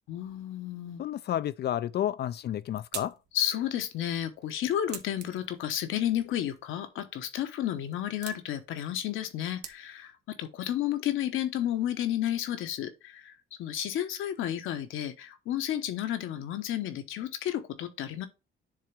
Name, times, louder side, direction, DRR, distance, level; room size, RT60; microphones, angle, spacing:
voice 1, 0.1-1.0 3.3-18.3, left 11 dB, 85° left, 1.0 m, -32 dB
voice 2, 1.0-3.1, left 11 dB, 55° left, 0.4 m, -31 dB
sound 1, 2.2-10.2, right 7 dB, 55° right, 1.0 m, -48 dB
10.0 x 3.4 x 3.4 m
cardioid pair, 90°, 20 cm